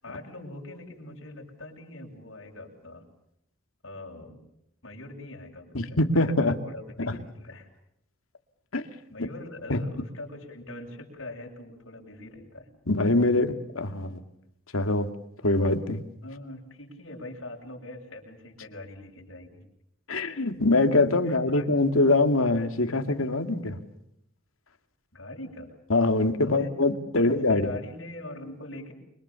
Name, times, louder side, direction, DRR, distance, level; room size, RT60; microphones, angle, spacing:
voice 1, 0.0-3.1 3.8-4.4 4.8-7.7 9.1-12.7 16.2-19.6 21.2-21.7 25.1-25.8 26.4-26.7 27.2-28.9, left 1 dB, 65° left, 0 dB, 7.7 m, -42 dB
voice 2, 5.7-6.5 7.0-7.2 8.7-8.9 9.7-9.8 12.9-14.2 14.7-15.1 15.4-16.0 20.1-23.8 25.9-27.7, left 2 dB, 90° left, 7 dB, 2.4 m, -23 dB
29.0 x 24.5 x 7.1 m, 0.78 s
head